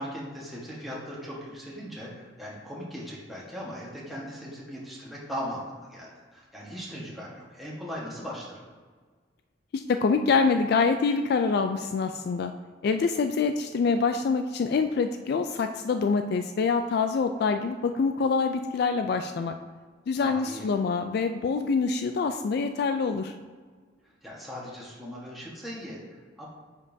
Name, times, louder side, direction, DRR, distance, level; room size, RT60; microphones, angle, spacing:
voice 1, 0.0-5.6 5.9-8.6 20.2-20.7 24.0-26.5, equal, ahead, -6 dB, 1.3 m, -39 dB
voice 2, 9.7-12.5 12.8-19.6 20.1-23.3, left 4 dB, 55° left, 7 dB, 0.3 m, -25 dB
9.6 x 5.2 x 2.7 m, 1.5 s
head